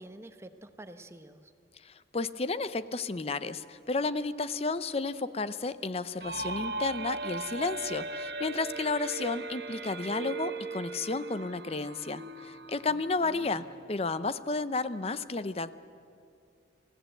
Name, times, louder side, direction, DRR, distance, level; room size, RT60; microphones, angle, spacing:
voice 1, 0.0-1.5 12.9-13.7, right 1 dB, 15° right, 9 dB, 1.0 m, -49 dB
voice 2, 1.8-15.7, left 3 dB, 35° left, 14 dB, 0.6 m, -32 dB
sound 1, 6.2-13.8, right 3 dB, 65° right, 1.2 m, -38 dB
28.0 x 16.0 x 8.0 m, 2.4 s
head